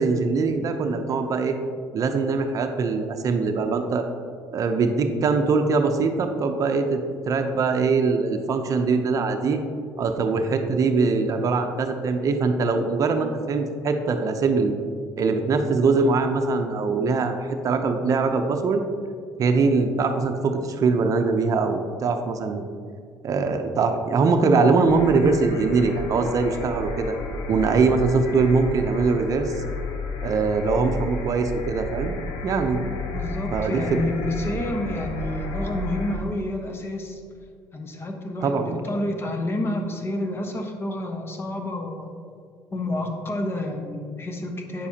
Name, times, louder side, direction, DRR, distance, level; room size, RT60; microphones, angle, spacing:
voice 1, 0.0-1.6 1.9-4.0 4.5-9.6 10.0-14.8 15.2-18.8 19.4-22.6 23.2-27.2 27.5-29.6 30.2-32.2 32.4-32.8 33.5-34.0 38.4-38.8, right 4 dB, 45° right, 6 dB, 0.7 m, -22 dB
sound 1, 24.9-36.2, left 1 dB, 70° left, 1.0 m, -32 dB
voice 2, 33.1-37.2 37.7-42.1 42.7-44.9, left 1 dB, 30° left, 3 dB, 1.1 m, -29 dB
9.2 x 6.9 x 2.9 m, 2.2 s
supercardioid pair, 90°, 8 cm